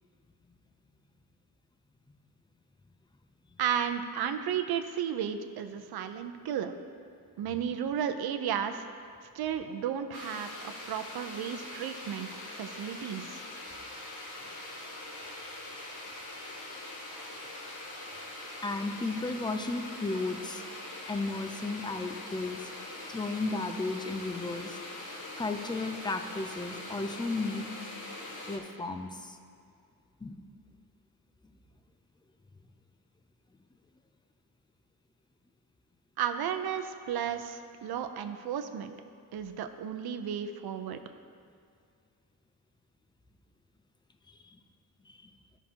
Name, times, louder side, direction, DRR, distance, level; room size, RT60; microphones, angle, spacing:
voice 1, 3.6-6.7 7.4-8.8 9.3-13.4 36.2-38.9 39.3-41.0, right 8 dB, 85° right, 8 dB, 0.7 m, -33 dB
sound 1, 10.1-28.6, left 1 dB, 55° left, 1.5 m, -43 dB
voice 2, 18.6-20.6 21.1-22.7 23.1-25.0 25.4-27.7 28.5-29.4 30.2-30.5 44.3-44.6 45.1-45.3, left 3 dB, 10° left, 7 dB, 0.5 m, -34 dB
15.0 x 6.0 x 2.9 m, 2.2 s
cardioid pair, 125°, 37 cm